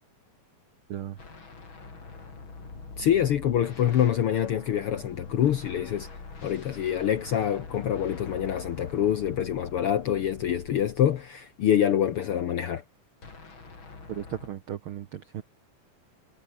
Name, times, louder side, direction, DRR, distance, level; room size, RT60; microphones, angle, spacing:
sound 1, 1.2-11.4 13.2-14.5, left 4 dB, 35° left, 4.8 m, -44 dB
voice 1, 3.0-6.1 6.4-12.8, left 10 dB, 65° left, 1.4 m, -26 dB
voice 2, 14.1-15.4, right 10 dB, 75° right, 1.2 m, -36 dB
omnidirectional pair, 3.8 m